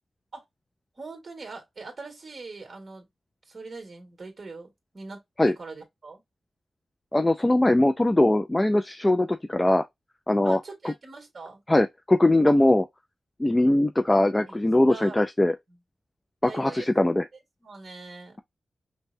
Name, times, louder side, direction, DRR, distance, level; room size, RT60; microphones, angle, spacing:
voice 1, 1.0-3.1 3.5-6.2 10.4-11.6 12.5-12.6 14.5-15.2 15.7-15.8 16.5-16.9 17.6-18.4, right 3 dB, 40° right, 1.7 m, -42 dB
voice 2, 7.1-9.8 10.3-10.9 11.7-12.8 13.4-15.5 16.4-17.2, left 1 dB, 15° left, 0.3 m, -21 dB
5.3 x 2.2 x 2.6 m
wide cardioid pair, 120°, 0 cm